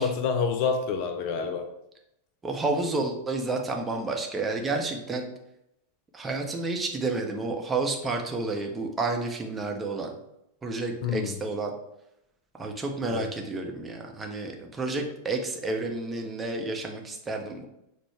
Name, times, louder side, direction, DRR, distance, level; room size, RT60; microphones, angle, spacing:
voice 1, 0.0-1.7 11.0-11.4 13.1-13.3, left 5 dB, 45° left, 7 dB, 0.4 m, -27 dB
voice 2, 2.4-5.3 6.1-10.1 10.6-11.7 12.6-17.7, right 3 dB, 15° right, 2 dB, 0.7 m, -30 dB
6.1 x 2.2 x 3.2 m, 0.81 s
figure-of-eight pair, 90°, 0 cm